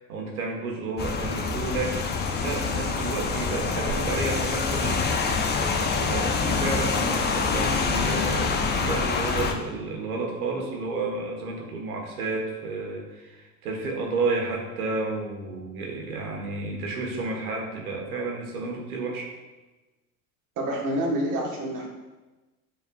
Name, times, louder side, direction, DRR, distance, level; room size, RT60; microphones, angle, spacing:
voice 1, 0.0-2.0 2.4-5.1 5.7-19.3, right 3 dB, 75° right, 0 dB, 1.5 m, -31 dB
Rain, 1.0-9.5, left 4 dB, 25° left, 0.7 m, -26 dB
voice 2, 20.6-21.9, right 1 dB, 45° right, -2 dB, 1.6 m, -27 dB
8.9 x 4.6 x 2.4 m, 1.2 s
hypercardioid pair, 75°, 44 cm